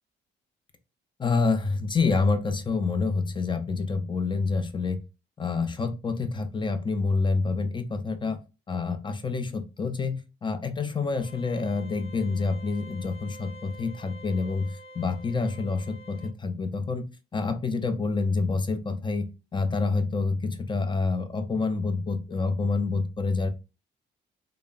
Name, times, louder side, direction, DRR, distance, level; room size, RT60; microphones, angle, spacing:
voice 1, 1.2-5.0 5.4-8.4 8.7-17.1 17.3-19.3 19.5-23.5, left 4 dB, 25° left, 9 dB, 0.5 m, -27 dB
sound 1, 11.2-16.3, equal, 55° left, 0.9 m, -48 dB
3.2 x 2.0 x 2.3 m, 0.29 s
cardioid pair, 90°, 20 cm